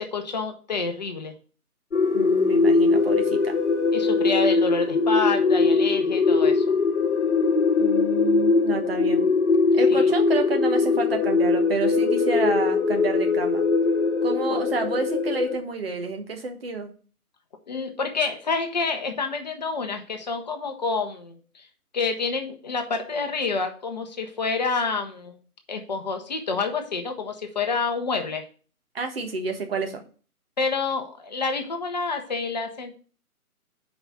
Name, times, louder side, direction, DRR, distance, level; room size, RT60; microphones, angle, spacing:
voice 1, 0.0-1.3 3.9-6.6 9.9-10.1 14.5-14.6 17.7-21.7 21.9-25.3 25.7-28.4 30.6-33.0, left 4 dB, 30° left, 5 dB, 0.9 m, -28 dB
sound 1, 1.9-15.6, left 4 dB, 50° left, 1.3 m, -21 dB
voice 2, 2.1-3.6 7.8-9.3 9.7-13.6 14.2-16.9 28.9-30.0, right 4 dB, 40° right, 5 dB, 1.4 m, -29 dB
5.9 x 5.1 x 6.7 m, 0.40 s
figure-of-eight pair, 145°, 45 cm